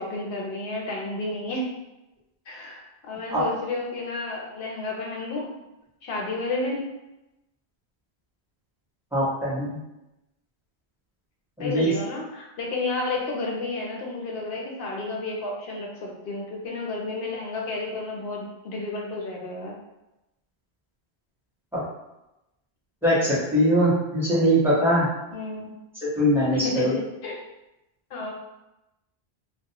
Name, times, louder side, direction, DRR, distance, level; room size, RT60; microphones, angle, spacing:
voice 1, 0.0-1.7 2.5-5.5 6.0-6.9 11.6-19.7 25.3-25.7 26.5-27.4 28.1-28.3, left 2 dB, 75° left, -1 dB, 0.8 m, -31 dB
voice 2, 9.1-9.8 11.6-11.9 21.7-21.8 23.0-25.1 26.0-27.0, equal, ahead, -10 dB, 0.8 m, -22 dB
2.3 x 2.1 x 2.7 m, 0.95 s
omnidirectional pair, 1.1 m